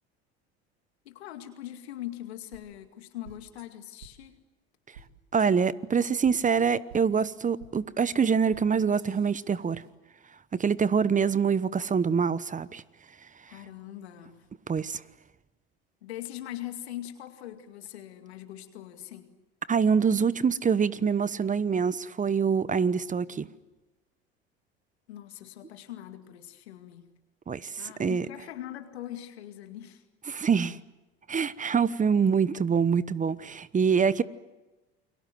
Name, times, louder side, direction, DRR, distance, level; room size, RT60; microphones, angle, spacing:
voice 1, 1.0-4.4 13.5-14.5 16.0-19.3 25.1-27.2 27.8-30.0, left 13 dB, 80° left, 2.3 m, -41 dB
sound 1, 2.5-2.6 3.2-3.6 4.0-4.1 4.9-5.1 5.4-5.5 6.2-6.4 6.9-7.2 7.6-7.7 8.5-8.6 8.9-9.9, right 6 dB, 85° right, 2.3 m, -51 dB
voice 2, 5.3-9.8 10.5-12.8 14.7-15.0 19.7-23.5 27.5-28.2 30.3-30.8 31.3-34.2, right 6 dB, 25° right, 1.1 m, -25 dB
29.5 x 23.0 x 7.8 m
hypercardioid pair, 70°, 31 cm